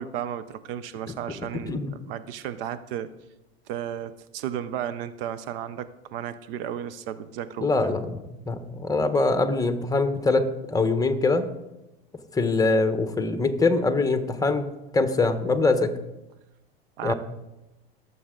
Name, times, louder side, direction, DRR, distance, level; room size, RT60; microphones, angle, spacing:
voice 1, 0.0-3.1 3.7-7.9 17.0-17.1, right 10 dB, 65° right, 14 dB, 0.8 m, -34 dB
voice 2, 7.6-11.5 12.3-14.7 14.9-15.9 17.0-17.1, left 3 dB, 10° left, 9 dB, 1.1 m, -23 dB
20.5 x 7.7 x 3.8 m, 0.96 s
hypercardioid pair, 105°, 30 cm